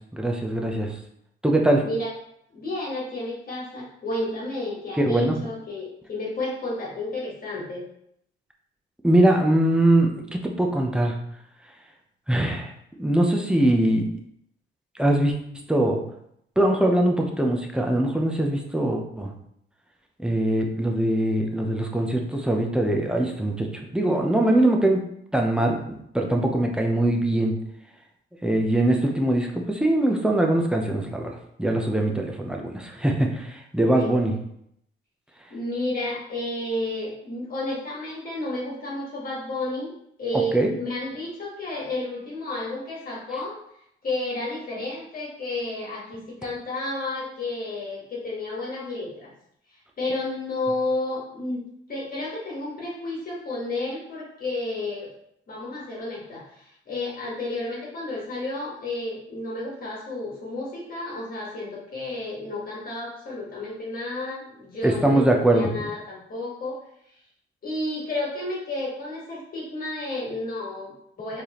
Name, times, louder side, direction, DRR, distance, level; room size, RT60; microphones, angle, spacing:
voice 1, 0.1-0.9 1.4-1.8 5.0-5.3 9.0-11.2 12.3-12.7 13.0-14.1 15.0-15.3 15.7-16.0 16.6-19.3 20.2-25.0 25.3-25.8 26.1-27.6 28.4-34.3 40.5-40.7 64.8-65.7, right 1 dB, 5° right, 1 dB, 0.7 m, -22 dB
voice 2, 1.8-2.1 2.5-7.8 33.9-34.1 35.5-39.9 40.2-43.6 44.0-49.3 50.0-51.6 51.9-55.1 55.5-66.8 67.6-71.4, left 2 dB, 45° left, -5 dB, 1.7 m, -31 dB
4.3 x 3.5 x 3.0 m, 0.74 s
cardioid pair, 90°, 20 cm